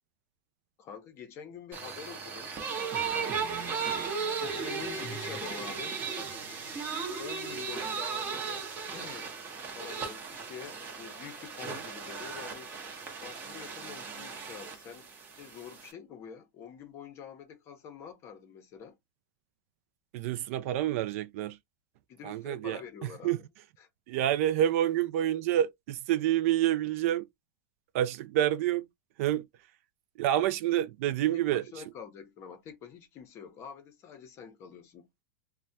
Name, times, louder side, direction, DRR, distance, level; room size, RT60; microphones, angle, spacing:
voice 1, 0.8-3.1 4.3-6.0 7.2-9.3 9.7-12.7 13.2-15.1 15.3-19.0 22.1-23.5 23.8-23.9 31.3-35.1, left 7 dB, 25° left, 0.7 m, -46 dB
sound 1, 1.7-15.9, right 5 dB, 20° right, 0.8 m, -36 dB
voice 2, 20.1-21.6 22.2-22.8 23.2-23.4 24.1-27.3 27.9-28.8 29.2-29.4 30.2-31.6, right 12 dB, 50° right, 0.3 m, -28 dB
3.3 x 2.1 x 2.7 m
supercardioid pair, 165°, 10 cm